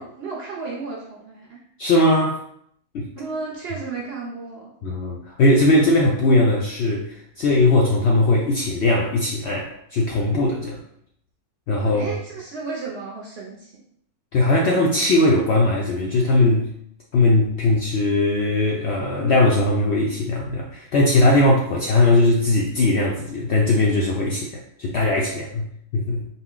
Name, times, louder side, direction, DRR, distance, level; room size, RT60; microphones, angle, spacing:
voice 1, 0.0-1.7 3.1-4.7 11.8-13.8, right 4 dB, 60° right, -3 dB, 0.7 m, -33 dB
voice 2, 1.8-2.4 2.9-3.1 4.8-10.8 11.7-12.1 14.3-16.7 17.1-26.3, left 2 dB, 70° left, -2 dB, 0.6 m, -19 dB
4.2 x 2.1 x 3.7 m, 0.70 s
omnidirectional pair, 1.6 m